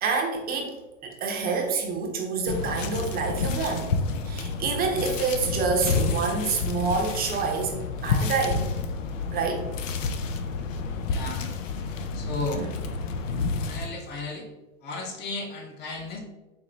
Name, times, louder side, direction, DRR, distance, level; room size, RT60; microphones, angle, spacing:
voice 1, 0.0-3.9 4.2-8.7 9.3-9.6 12.6-12.7, right 4 dB, 25° right, 1 dB, 0.6 m, -27 dB
sound 1, 2.5-13.9, left 4 dB, 75° left, 0.6 m, -30 dB
voice 2, 11.1-11.5 12.1-12.6 13.6-14.5 14.8-16.2, left 3 dB, 25° left, 2 dB, 0.7 m, -34 dB
4.4 x 2.1 x 3.8 m, 1.0 s
hypercardioid pair, 110°, 39 cm